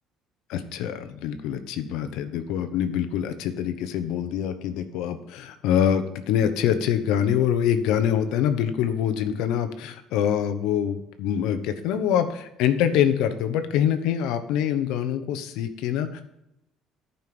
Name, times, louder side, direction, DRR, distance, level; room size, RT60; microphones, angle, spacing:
voice 1, 0.5-16.2, left 9 dB, 80° left, 9 dB, 0.9 m, -25 dB
11.0 x 5.6 x 6.1 m, 0.83 s
cardioid pair, 160°, 0 cm